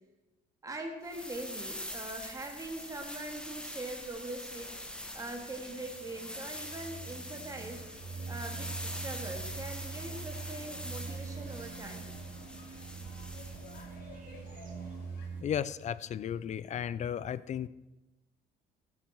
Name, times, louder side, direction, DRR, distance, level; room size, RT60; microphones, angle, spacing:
voice 1, 0.6-4.7 5.1-7.9 8.3-12.1, right 2 dB, 20° right, 2 dB, 2.6 m, -42 dB
sound 1, 1.0-13.9, left 1 dB, 5° left, 1.6 m, -44 dB
sound 2, 4.5-15.3, left 4 dB, 65° left, 2.8 m, -55 dB
sound 3, 5.7-15.4, right 5 dB, 55° right, 2.1 m, -43 dB
voice 2, 15.4-17.7, left 9 dB, 45° left, 18 dB, 0.6 m, -34 dB
15.5 x 12.0 x 4.7 m, 1.0 s
cardioid pair, 110°, 17 cm